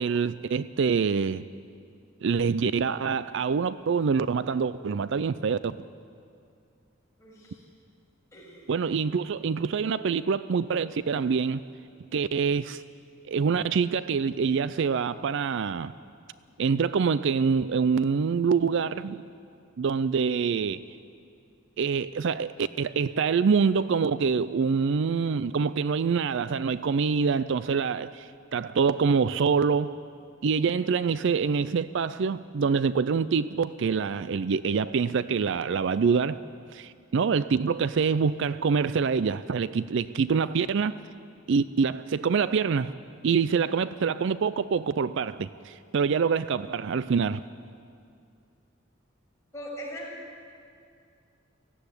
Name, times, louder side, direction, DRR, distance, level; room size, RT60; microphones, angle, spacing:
voice 1, 0.0-1.4 2.2-5.8 8.7-11.6 12.1-12.8 13.3-15.9 16.6-19.2 19.8-20.8 21.8-29.9 30.4-36.4 36.7-41.0 41.5-42.9 43.2-47.4, right 5 dB, 60° right, 15 dB, 0.4 m, -25 dB
voice 2, 7.2-7.6 8.3-8.7 31.1-31.2 49.5-50.1, equal, 15° left, -6 dB, 6.7 m, -41 dB
17.0 x 15.5 x 9.8 m, 2.4 s
head